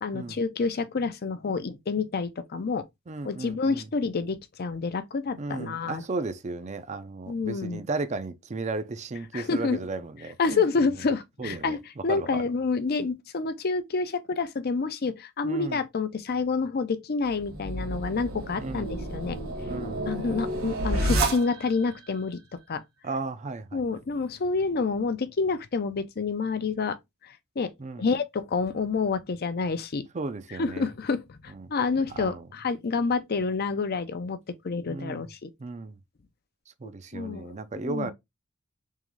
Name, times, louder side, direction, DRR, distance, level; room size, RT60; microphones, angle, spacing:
voice 1, 0.0-2.8 3.2-6.0 7.3-7.8 9.3-9.8 10.4-19.4 20.1-22.4 22.7-22.8 23.7-27.0 27.2-27.7 28.0-30.1 30.5-35.5 37.1-38.1, left 4 dB, 45° left, 0.5 m, -28 dB
voice 2, 3.1-3.9 5.4-10.6 11.4-11.8 12.1-12.4 15.4-15.8 18.6-18.9 19.6-20.0 23.0-23.8 27.8-28.1 30.1-30.9 31.5-31.7 32.2-32.5 34.9-35.3 35.6-36.0 36.8-38.1, right 3 dB, 35° right, 0.5 m, -34 dB
sound 1, 17.3-21.9, right 1 dB, 75° right, 1.7 m, -30 dB
3.7 x 3.1 x 3.1 m
head